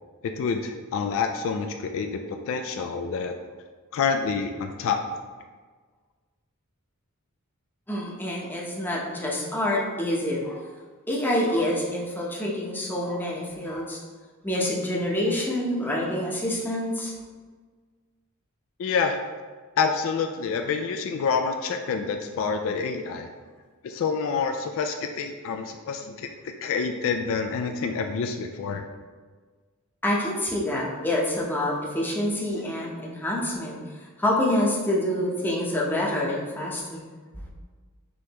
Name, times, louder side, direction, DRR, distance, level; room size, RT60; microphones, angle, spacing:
voice 1, 0.4-3.4 3.9-5.0 18.8-19.2 19.8-23.3 23.8-28.9, left 5 dB, 65° left, 5 dB, 0.3 m, -27 dB
voice 2, 7.9-10.6 11.1-14.0 14.4-17.1 30.0-33.8 34.2-37.0, left 1 dB, 10° left, -4 dB, 0.7 m, -27 dB
5.3 x 3.2 x 2.9 m, 1.5 s
head